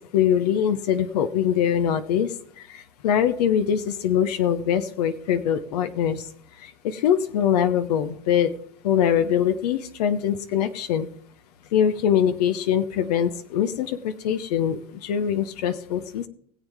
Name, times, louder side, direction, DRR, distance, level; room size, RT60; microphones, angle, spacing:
voice 1, 0.1-6.3 6.6-8.5 8.8-11.1 11.7-16.3, left 9 dB, 90° left, 10 dB, 0.9 m, -23 dB
20.5 x 7.5 x 3.5 m, 0.62 s
supercardioid pair, 100°, 20 cm